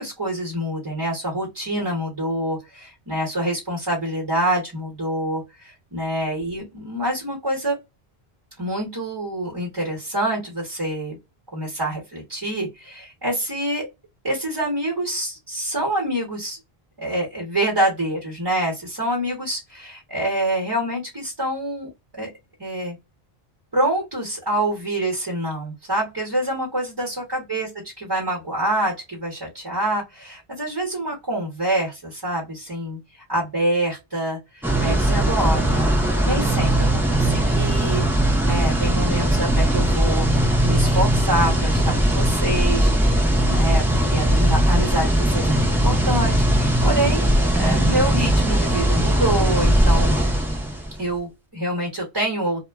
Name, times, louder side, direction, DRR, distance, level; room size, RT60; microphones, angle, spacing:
voice 1, 0.0-7.7 8.6-11.2 11.5-13.9 14.2-16.6 17.0-22.3 22.6-23.0 23.7-27.7 28.0-40.4 40.6-47.2 47.6-50.2 51.0-52.6, right 1 dB, 25° right, -1 dB, 0.9 m, -26 dB
sound 1, 34.6-51.0, right 1 dB, 5° right, 0.3 m, -19 dB
2.1 x 2.1 x 3.3 m, 0.22 s
omnidirectional pair, 1.0 m